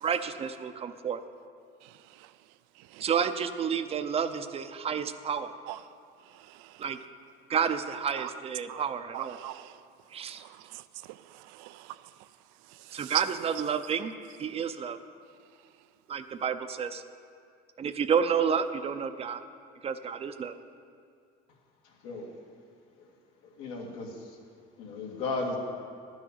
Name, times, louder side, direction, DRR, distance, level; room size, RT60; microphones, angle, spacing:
voice 1, 0.0-1.2 3.0-5.5 6.8-7.0 7.5-9.4 10.1-10.4 12.9-14.1 14.4-15.0 16.1-17.0 17.8-19.4 19.8-20.5, right 7 dB, 30° right, 0.5 m, -30 dB
voice 2, 9.1-9.8 10.4-10.8 11.1-12.0 12.9-13.2, right 18 dB, 85° right, 0.5 m, -39 dB
voice 3, 23.6-24.4 24.8-25.6, left 3 dB, 90° left, 2.1 m, -35 dB
11.5 x 6.3 x 8.5 m
cardioid pair, 125°, 20 cm